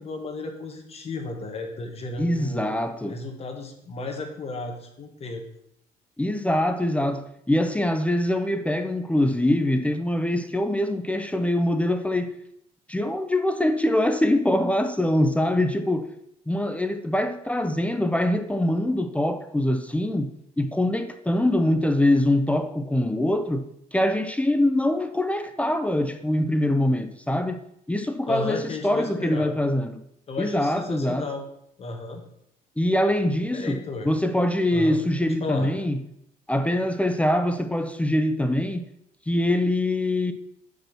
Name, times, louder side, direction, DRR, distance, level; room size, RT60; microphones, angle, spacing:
voice 1, 0.0-2.8 3.1-5.4 28.3-29.5 30.3-31.5 31.8-32.2 33.5-34.1 34.7-35.7, left 3 dB, 35° left, 1.7 m, -34 dB
voice 2, 2.2-3.2 6.2-12.4 12.9-16.1 16.5-20.3 20.6-27.6 27.9-30.0 30.4-31.3 32.8-36.0 36.5-38.9 39.3-40.3, left 1 dB, 10° left, 0.6 m, -24 dB
5.9 x 5.3 x 5.9 m
cardioid pair, 110°, 17 cm